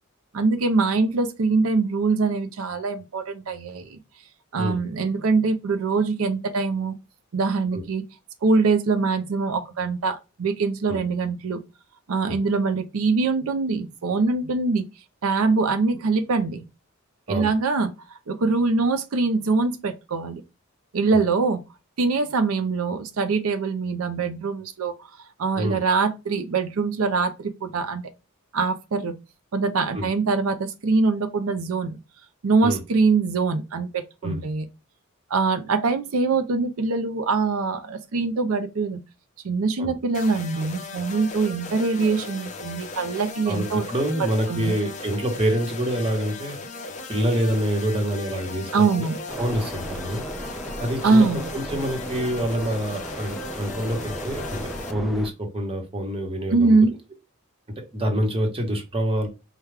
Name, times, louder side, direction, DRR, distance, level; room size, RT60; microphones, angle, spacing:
voice 1, 0.3-4.0 4.5-6.9 7.3-8.0 8.4-11.6 12.1-14.9 15.2-16.7 17.3-17.9 18.3-20.4 20.9-21.6 22.0-25.1 25.4-28.0 28.5-29.2 29.5-31.9 32.4-34.7 35.3-39.0 39.4-43.8 44.5-44.7 48.7-49.2 51.0-51.5 56.5-56.9, right 4 dB, 90° right, 0.5 m, -23 dB
sound 1, 40.1-54.9, left 3 dB, 35° left, 0.7 m, -37 dB
voice 2, 43.4-46.5 47.1-49.1 49.4-50.3 50.8-51.3 51.5-54.6 54.9-56.8 57.9-59.3, equal, 25° right, 1.1 m, -26 dB
sound 2, 49.3-55.3, equal, ahead, 0.3 m, -36 dB
4.7 x 2.2 x 3.3 m
head